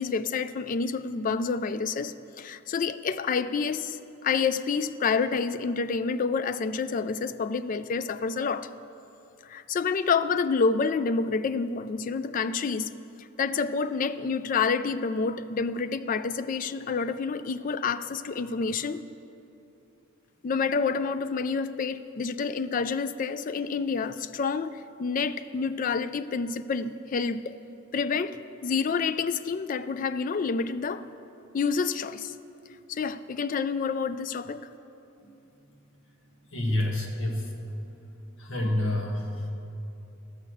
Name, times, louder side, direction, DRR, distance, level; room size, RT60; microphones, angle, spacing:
voice 1, 0.0-8.7 9.5-12.9 13.4-19.0 20.4-27.6 27.9-31.0 31.5-32.3 32.9-34.6, left 5 dB, 40° left, 13 dB, 0.3 m, -28 dB
voice 2, 36.5-37.7 38.4-39.5, left 1 dB, 70° left, 0 dB, 1.6 m, -29 dB
12.5 x 6.5 x 7.6 m, 2.9 s
head